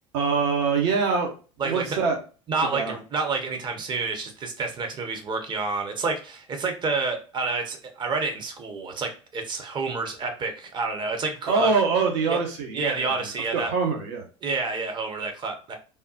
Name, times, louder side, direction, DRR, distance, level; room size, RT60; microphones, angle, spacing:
voice 1, 0.1-1.3 1.6-2.2 2.7-2.9 11.5-14.2, right 5 dB, 60° right, 1 dB, 0.8 m, -24 dB
voice 2, 1.6-2.0 2.5-11.7 12.3-12.4 12.7-13.7 14.4-15.8, right 4 dB, 30° right, 4 dB, 0.7 m, -29 dB
3.4 x 2.3 x 2.7 m, 0.36 s
figure-of-eight pair, 70°, 16 cm